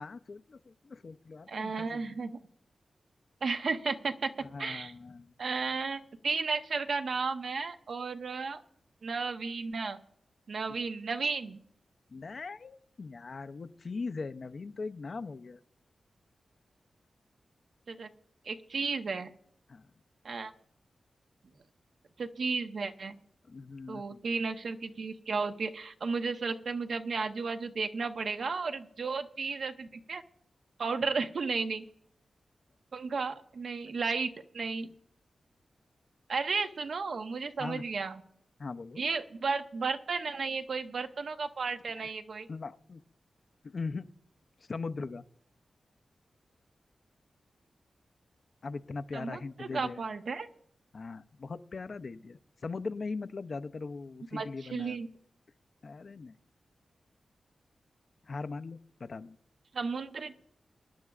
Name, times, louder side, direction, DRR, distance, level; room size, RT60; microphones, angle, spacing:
voice 1, 0.0-2.2 4.4-5.3 12.1-15.6 19.7-19.9 23.4-24.2 37.6-37.8 38.6-39.0 42.0-42.1 42.5-43.0 43.6-44.1 44.6-45.2 48.6-50.0 50.9-55.0 55.8-56.3 58.2-59.4, left 4 dB, 45° left, 11 dB, 0.5 m, -40 dB
voice 2, 1.5-2.4 3.4-4.3 4.6-4.9 5.4-8.6 9.0-10.0 10.5-11.6 17.9-18.1 18.4-19.3 20.2-20.5 22.2-23.2 23.9-30.2 30.8-31.8 32.9-34.9 36.3-38.2 39.0-42.5 49.1-50.5 54.3-55.1 59.7-60.3, right 4 dB, 65° right, 6 dB, 1.0 m, -33 dB
24.5 x 11.0 x 2.4 m, 0.64 s
wide cardioid pair, 155°, 0 cm